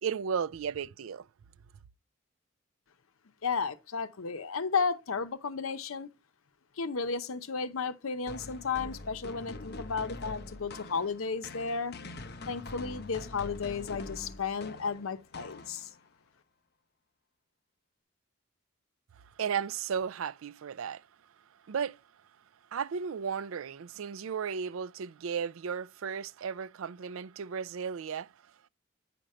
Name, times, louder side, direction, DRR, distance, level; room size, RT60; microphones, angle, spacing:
voice 1, 0.0-1.3 19.2-21.1 21.5-22.0 22.7-28.5, right 7 dB, 80° right, 0.4 m, -35 dB
voice 2, 3.4-6.1 6.8-12.0 12.5-15.9, left 5 dB, 90° left, 0.7 m, -33 dB
sound 1, 8.3-16.1, left 2 dB, 50° left, 0.7 m, -44 dB
9.2 x 5.1 x 4.2 m
head